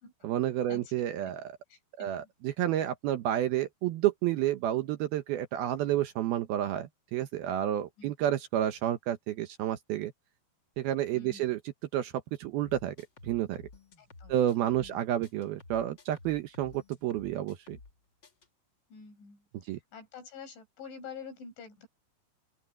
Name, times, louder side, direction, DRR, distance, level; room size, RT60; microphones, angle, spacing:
voice 1, 0.2-1.5 2.0-10.1 10.8-11.6 11.9-12.1 12.4-12.9 13.2-13.7 14.3-17.8 19.7-19.8, right 12 dB, 70° right, 2.5 m, -30 dB
voice 2, 1.7-2.3 8.0-8.1 11.1-11.6 14.0-15.0 18.9-21.9, left 6 dB, 85° left, 8.7 m, -48 dB
sound 1, 12.6-15.0 15.2-18.0 18.2-18.5, left 3 dB, 40° left, 1.8 m, -52 dB
open air
omnidirectional pair, 5.2 m